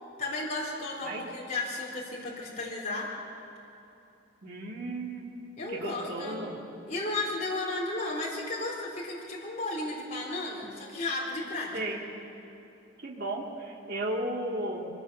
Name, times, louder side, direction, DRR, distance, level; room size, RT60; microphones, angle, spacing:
voice 1, 0.2-3.1 5.6-6.4 6.9-11.7, left 2 dB, 35° left, -4 dB, 3.9 m, -34 dB
voice 2, 4.4-5.3 5.7-6.6 11.7-12.0 13.0-14.9, right 1 dB, 55° right, -1 dB, 2.1 m, -34 dB
23.0 x 17.5 x 7.0 m, 2.8 s
head